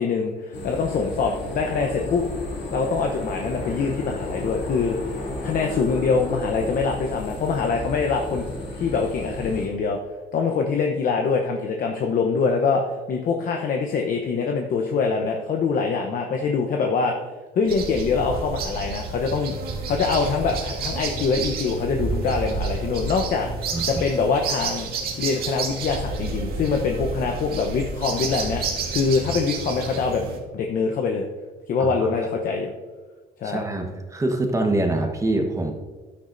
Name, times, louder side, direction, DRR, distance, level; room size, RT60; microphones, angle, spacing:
voice 1, 0.0-2.3 2.7-5.0 5.4-8.4 8.8-10.0 10.3-17.1 17.5-19.6 19.9-23.5 23.9-24.9 25.2-28.6 28.9-30.3 30.5-31.3 31.7-32.7 33.4-33.6, left 5 dB, 55° left, 3 dB, 0.8 m, -24 dB
sound 1, 0.5-9.7, left 1 dB, 90° left, 2.5 m, -33 dB
sound 2, 17.7-30.4, right 3 dB, 65° right, 1.9 m, -30 dB
voice 2, 33.4-35.7, right 2 dB, 20° right, 3 dB, 1.2 m, -24 dB
12.0 x 10.0 x 2.6 m, 1.4 s
cardioid pair, 110°, 17 cm